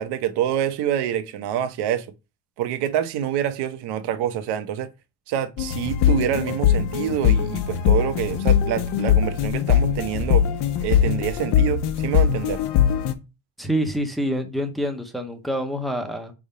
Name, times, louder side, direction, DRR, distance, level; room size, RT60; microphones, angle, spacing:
voice 1, 0.0-2.1 2.6-4.9 5.3-10.5 10.8-12.6, right 10 dB, 90° right, 0.9 m, -26 dB
sound 1, 5.6-13.1, left 9 dB, 85° left, 1.0 m, -21 dB
voice 2, 13.6-16.3, equal, ahead, 0.5 m, -26 dB
4.9 x 3.6 x 5.4 m
cardioid pair, 175°, 39 cm